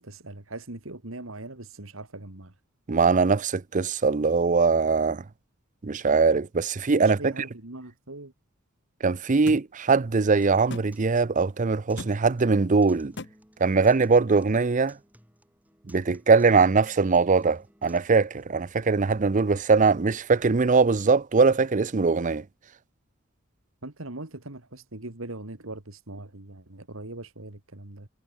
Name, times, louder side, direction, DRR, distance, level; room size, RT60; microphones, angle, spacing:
voice 1, 0.0-2.5 7.0-8.3 23.8-28.1, right 2 dB, 65° right, 2.3 m, -40 dB
voice 2, 2.9-5.2 5.8-7.3 9.0-13.1 13.6-15.0 15.9-22.4, right 4 dB, 35° right, 0.5 m, -21 dB
sound 1, 9.5-9.6 10.7-10.9 12.0-12.1 13.2-13.3, left 2 dB, 55° left, 1.4 m, -36 dB
Acoustic guitar, 10.4-18.4, right 1 dB, 5° right, 5.8 m, -57 dB
head